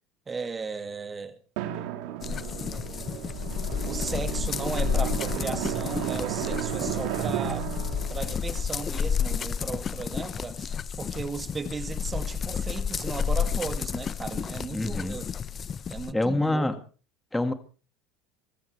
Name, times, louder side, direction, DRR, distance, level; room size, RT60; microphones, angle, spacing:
voice 1, 0.3-1.4 1.7-3.3 3.8-7.7 8.1-15.3 15.9-16.7, right 4 dB, 25° right, 2.1 m, -36 dB
Drum, 1.6-9.8, right 11 dB, 70° right, 2.0 m, -34 dB
sound 1, 2.2-16.1, left 7 dB, 35° left, 0.7 m, -31 dB
voice 2, 14.7-15.2 16.1-16.8 17.3-17.5, left 2 dB, 10° left, 1.7 m, -26 dB
24.0 x 14.0 x 3.2 m
hypercardioid pair, 95°, 0 cm